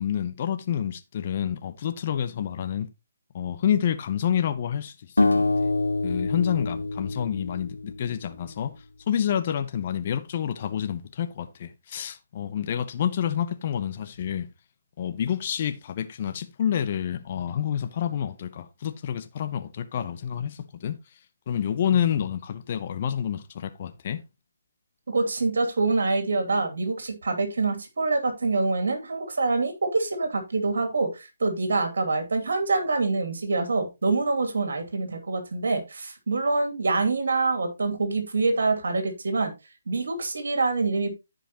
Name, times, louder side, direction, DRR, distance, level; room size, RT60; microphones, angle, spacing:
voice 1, 0.0-2.9 3.3-5.5 6.0-8.7 9.1-14.5 15.0-21.0 21.5-24.2, left 9 dB, 40° left, 0.8 m, -28 dB
sound 1, 5.2-8.3, left 3 dB, 70° left, 1.6 m, -26 dB
voice 2, 25.1-39.5 39.9-41.2, right 3 dB, 60° right, 2.7 m, -25 dB
14.5 x 5.3 x 3.0 m
figure-of-eight pair, 140°, 0 cm